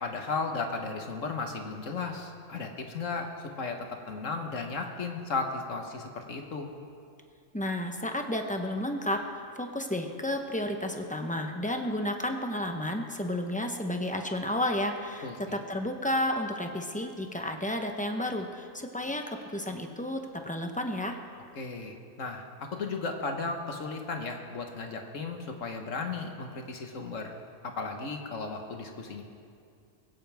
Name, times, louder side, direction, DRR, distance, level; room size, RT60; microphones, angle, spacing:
voice 1, 0.0-6.7 15.2-15.6 21.5-27.3 27.6-29.2, left 4 dB, 60° left, 3 dB, 1.7 m, -35 dB
voice 2, 7.5-9.2 9.6-21.2, left 1 dB, 5° left, 4 dB, 0.8 m, -32 dB
20.5 x 16.5 x 3.6 m, 2.3 s
omnidirectional pair, 1.5 m